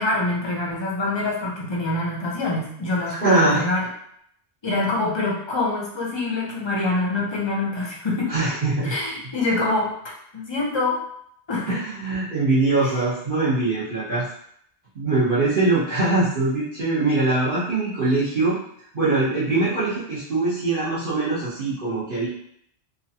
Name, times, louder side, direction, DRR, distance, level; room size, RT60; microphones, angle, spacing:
voice 1, 0.0-3.9 4.6-8.3 8.8-9.9 10.3-11.0 11.5-11.8 12.8-12.9, left 2 dB, 30° left, -3 dB, 0.5 m, -25 dB
voice 2, 3.2-3.6 8.3-8.9 11.7-14.3 15.0-18.6 18.9-22.3, right 2 dB, 50° right, -10 dB, 0.9 m, -22 dB
3.0 x 2.3 x 2.7 m, 0.69 s
omnidirectional pair, 1.1 m